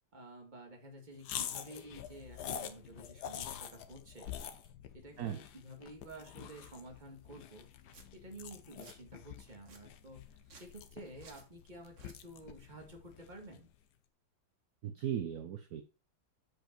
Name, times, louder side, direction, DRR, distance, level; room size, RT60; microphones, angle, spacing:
voice 1, 0.1-4.3 4.9-7.7 8.1-10.3 10.5-13.7, right 1 dB, 25° right, 2 dB, 1.8 m, -51 dB
sound 1, 1.2-13.7, left 9 dB, 65° left, 1.2 m, -46 dB
Domestic sounds home sounds, 7.9-8.1 8.5-9.0 9.5-9.8 10.4-10.7 11.2-11.5 11.9-12.2, right 4 dB, 45° right, 1.5 m, -57 dB
voice 2, 14.8-15.8, right 10 dB, 65° right, 8 dB, 1.1 m, -37 dB
7.7 x 5.2 x 4.4 m, 0.32 s
omnidirectional pair, 2.0 m